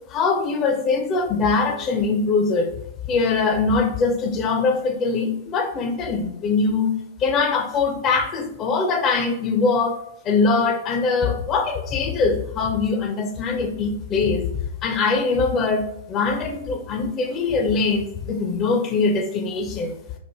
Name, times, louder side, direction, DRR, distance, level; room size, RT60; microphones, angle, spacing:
voice 1, 0.1-2.7 3.1-10.0 10.2-14.5 14.8-20.0, left 4 dB, 30° left, 5 dB, 0.6 m, -22 dB
4.5 x 2.4 x 3.6 m, 0.78 s
figure-of-eight pair, 105°, 0 cm